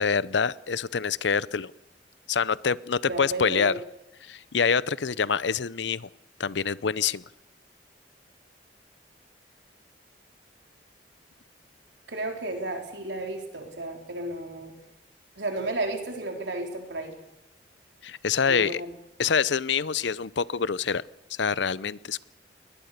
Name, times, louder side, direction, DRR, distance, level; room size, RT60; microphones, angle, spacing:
voice 1, 0.0-1.7 2.3-3.7 4.2-6.1 6.4-7.2 18.0-18.8 19.2-21.0 21.3-22.2, left 6 dB, 85° left, 19 dB, 0.7 m, -26 dB
voice 2, 3.1-3.8 12.1-14.7 15.4-17.2 18.5-18.9, right 2 dB, 80° right, 3 dB, 4.0 m, -33 dB
21.5 x 20.0 x 6.7 m, 0.90 s
head